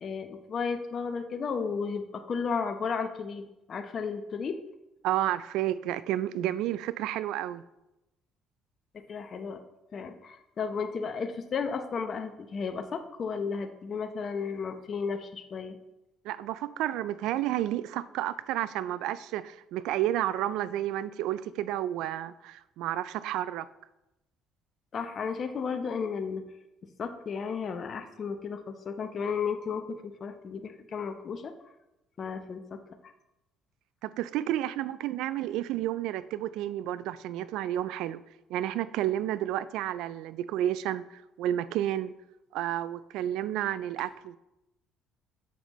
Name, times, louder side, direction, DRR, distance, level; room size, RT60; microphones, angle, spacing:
voice 1, 0.0-4.6 8.9-9.6 9.9-15.8 24.9-26.4 27.0-31.5 32.2-32.8, left 5 dB, 50° left, 7 dB, 0.8 m, -33 dB
voice 2, 5.0-7.6 16.2-23.7 34.0-38.2 38.5-42.1 42.5-44.4, right 13 dB, 75° right, 16 dB, 0.3 m, -31 dB
7.1 x 7.1 x 3.1 m, 0.93 s
hypercardioid pair, 60°, 0 cm